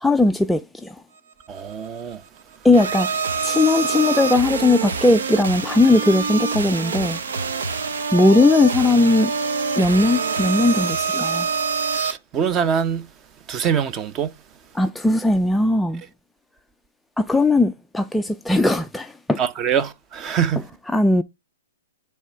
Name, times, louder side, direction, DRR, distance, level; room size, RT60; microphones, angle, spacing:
voice 1, 0.0-1.0 2.6-3.1 3.4-7.2 8.1-9.3 9.8-11.5 14.7-16.0 17.2-19.4 20.6-21.2, left 2 dB, 5° left, 0.4 m, -18 dB
voice 2, 1.5-2.2 11.9-13.0 13.5-14.3 19.4-20.6, right 7 dB, 25° right, 0.7 m, -23 dB
sound 1, 2.7-12.1, right 5 dB, 75° right, 1.0 m, -25 dB
10.0 x 3.4 x 5.6 m
hypercardioid pair, 140°, 0 cm